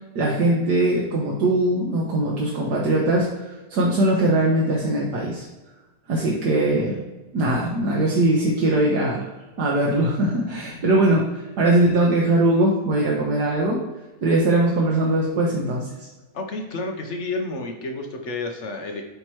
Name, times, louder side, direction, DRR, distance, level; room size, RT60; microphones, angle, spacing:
voice 1, 0.1-5.4 6.1-7.0 7.3-9.3 9.6-13.8 14.2-16.1, right 1 dB, 80° right, -3 dB, 1.6 m, -21 dB
voice 2, 16.3-19.0, left 2 dB, 55° left, 4 dB, 0.9 m, -30 dB
8.7 x 3.0 x 4.5 m, 1.1 s
omnidirectional pair, 1.7 m